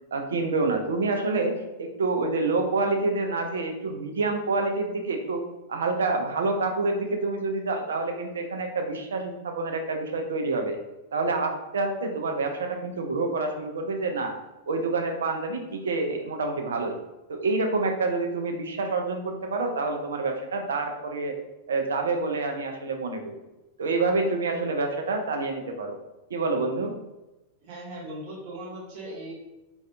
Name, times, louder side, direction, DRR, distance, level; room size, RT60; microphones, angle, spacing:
voice 1, 0.1-5.4 5.7-10.8 11.1-14.4 14.7-16.9 17.3-21.4 21.7-23.4 23.8-26.0 26.3-26.9, right 3 dB, 65° right, 4 dB, 0.4 m, -27 dB
voice 2, 27.6-29.3, right 1 dB, 45° right, -6 dB, 0.8 m, -38 dB
2.4 x 2.2 x 2.4 m, 1.0 s
figure-of-eight pair, 95°, 0 cm